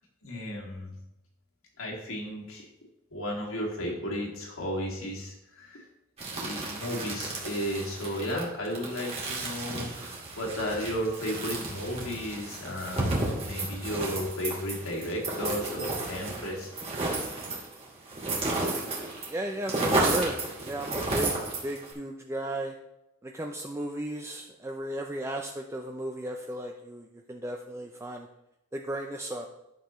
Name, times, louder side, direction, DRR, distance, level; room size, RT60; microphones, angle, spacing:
voice 1, 0.2-0.9 1.8-2.7 3.1-5.9 6.3-16.7, equal, 85° left, -1 dB, 2.3 m, -34 dB
sound 1, 6.2-19.3 19.5-21.9, right 2 dB, 30° right, 2.0 m, -32 dB
voice 2, 19.3-22.8 23.2-28.3 28.7-29.5, right 1 dB, 15° right, 2 dB, 0.4 m, -35 dB
11.0 x 6.6 x 3.1 m, 0.91 s
head